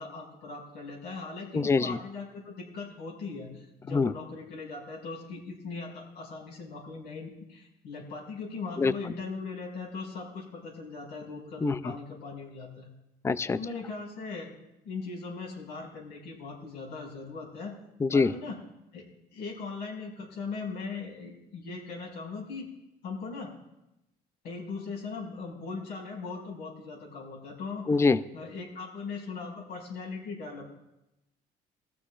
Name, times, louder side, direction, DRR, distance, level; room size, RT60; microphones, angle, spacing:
voice 1, 0.0-12.9 13.6-14.5 14.8-17.7 18.1-18.6 18.9-19.0 19.3-22.7 23.0-23.5 24.4-27.9 28.3-30.7, left 4 dB, 85° left, -3 dB, 5.6 m, -39 dB
voice 2, 1.5-2.0 3.9-4.1 8.8-8.9 11.6-11.9 13.2-13.6 18.0-18.3 27.9-28.2, left 4 dB, 15° left, 15 dB, 0.4 m, -24 dB
20.0 x 14.5 x 2.5 m, 0.90 s
cardioid pair, 110°, 17 cm